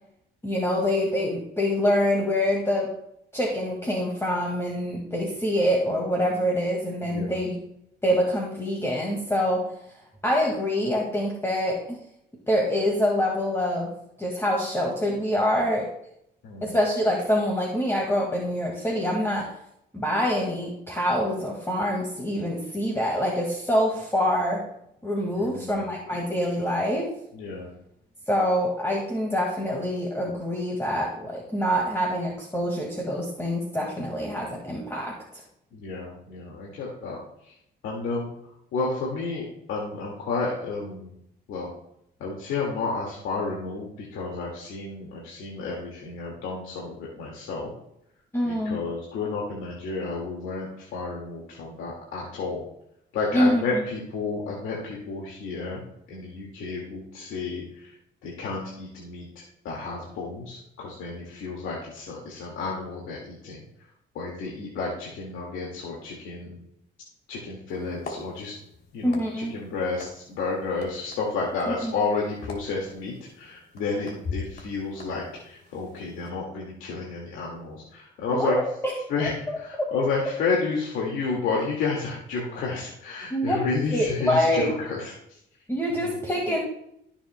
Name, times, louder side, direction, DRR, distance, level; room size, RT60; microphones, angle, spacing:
voice 1, 0.4-2.9 3.3-7.6 8.0-9.7 10.2-12.0 12.5-15.9 16.6-19.5 19.9-24.7 25.0-27.1 28.3-35.2 48.3-48.8 53.3-53.6 69.0-69.5 71.8-71.9 78.3-78.9 83.3-83.6 83.9-84.7 85.7-86.6, equal, 10° left, -2 dB, 1.9 m, -25 dB
voice 2, 7.0-7.4 16.4-16.8 25.3-25.9 27.3-27.7 35.7-37.2 37.4-37.6 37.8-38.3 38.7-41.1 41.5-41.7 42.2-47.7 48.4-52.6 53.1-55.8 56.1-58.0 58.2-63.6 64.1-66.6 67.3-68.6 68.9-78.6 79.1-85.1 86.0-86.1, left 4 dB, 85° left, -3 dB, 2.0 m, -31 dB
sound 1, 67.7-76.3, left 4 dB, 55° left, 2.9 m, -42 dB
14.5 x 7.0 x 2.2 m, 0.75 s
cardioid pair, 90°, 20 cm